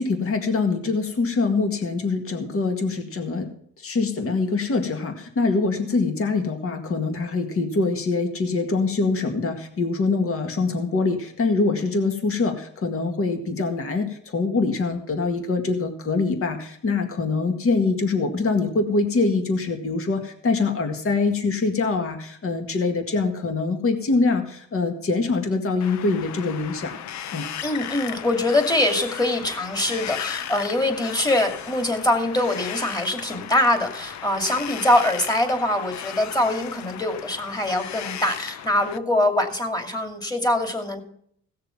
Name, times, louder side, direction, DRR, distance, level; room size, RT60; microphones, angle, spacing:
voice 1, 0.0-27.0 27.3-27.5, left 3 dB, 45° left, 5 dB, 1.9 m, -24 dB
Wind, 25.8-39.0, left 10 dB, 70° left, 0.7 m, -36 dB
voice 2, 27.6-41.0, left 1 dB, 15° left, 5 dB, 2.5 m, -23 dB
17.0 x 6.7 x 5.9 m, 0.64 s
cardioid pair, 90°, 30 cm